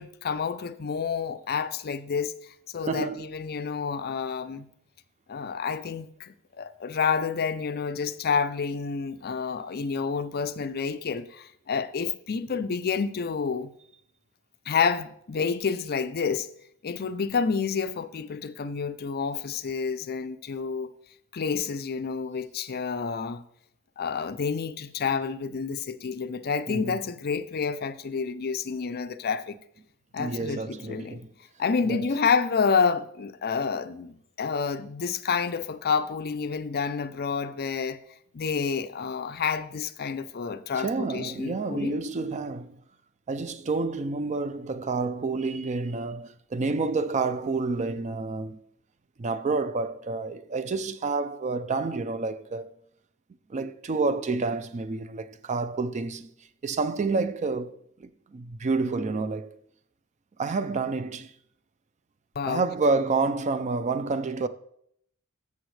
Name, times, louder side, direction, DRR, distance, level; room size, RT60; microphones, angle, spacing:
voice 1, 0.0-4.7 5.3-13.7 14.7-16.5 16.8-20.9 21.3-23.4 24.0-29.6 30.1-31.2 31.6-38.0 38.3-42.0 62.4-62.6, left 5 dB, 45° left, 0.5 m, -29 dB
voice 2, 2.9-3.3 26.7-27.0 30.2-31.3 31.9-32.0 40.7-42.8 43.3-48.6 49.2-52.7 53.5-56.3 56.6-59.6 60.4-61.3 62.5-64.5, right 3 dB, 30° right, 0.4 m, -29 dB
14.0 x 7.0 x 3.2 m
head